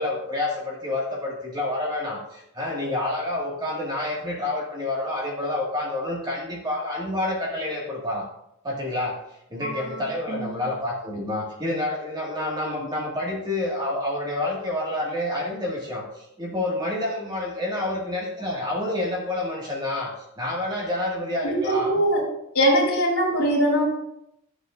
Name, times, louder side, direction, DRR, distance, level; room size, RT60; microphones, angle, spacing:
voice 1, 0.0-8.3 8.6-9.2 9.5-21.9, left 1 dB, 20° right, -2 dB, 1.7 m, -28 dB
voice 2, 9.6-10.6 21.4-22.2 22.5-23.8, equal, 80° left, -3 dB, 3.0 m, -22 dB
12.5 x 6.8 x 2.5 m, 0.79 s
head